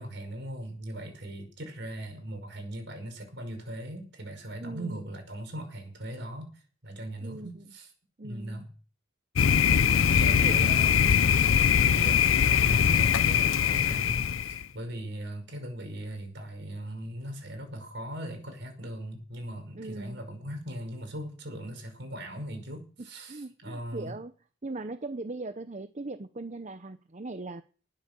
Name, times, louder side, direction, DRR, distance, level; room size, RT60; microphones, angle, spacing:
voice 1, 0.0-6.5 6.8-7.9 8.2-8.7 9.6-11.2 11.9-24.2, right 1 dB, 55° right, 5.5 m, -39 dB
voice 2, 4.6-5.0 7.2-7.6 8.2-8.7 9.5-11.4 19.8-20.2 23.3-24.3 24.6-27.6, right 2 dB, 35° right, 0.7 m, -40 dB
Thunder, 9.4-14.6, left 7 dB, 75° left, 0.6 m, -22 dB
19.0 x 8.1 x 6.9 m
head